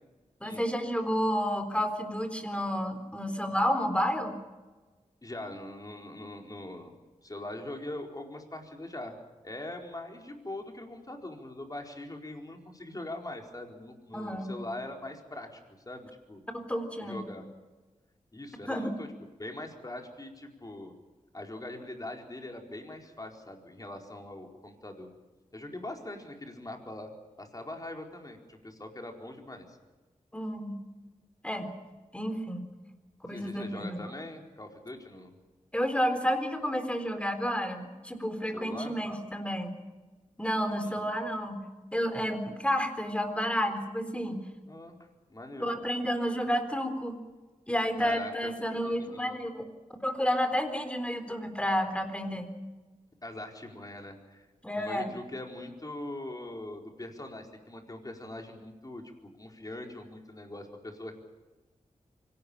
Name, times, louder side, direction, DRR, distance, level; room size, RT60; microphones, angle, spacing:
voice 1, 0.4-4.4 14.1-14.5 16.5-17.3 18.7-18.9 30.3-30.8 31.4-31.7 32.1-32.6 33.3-34.0 35.7-39.7 40.4-44.5 45.6-47.2 47.7-49.7 50.0-52.5 54.6-55.1, equal, 10° left, 7 dB, 3.9 m, -30 dB
voice 2, 5.2-6.9 7.2-9.2 9.4-15.6 15.9-16.4 17.0-17.5 18.3-19.1 19.4-20.9 21.3-25.1 25.5-27.1 27.4-29.8 33.3-35.3 38.5-38.9 40.8-41.0 44.7-45.0 45.3-45.7 48.0-49.4 53.2-54.5 54.8-59.0 59.4-61.2, left 1 dB, 30° left, 2 dB, 4.6 m, -42 dB
25.0 x 18.0 x 8.8 m, 1.2 s
wide cardioid pair, 75°, 13 cm